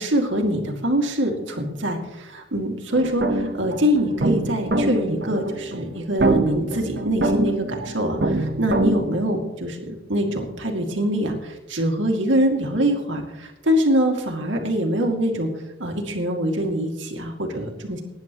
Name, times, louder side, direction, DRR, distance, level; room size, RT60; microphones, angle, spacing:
voice 1, 0.0-15.5 15.8-18.0, equal, 85° right, 2 dB, 2.4 m, -24 dB
sound 1, 2.9-9.0, right 2 dB, 60° right, 1.2 m, -24 dB
19.5 x 10.5 x 3.1 m, 0.96 s
head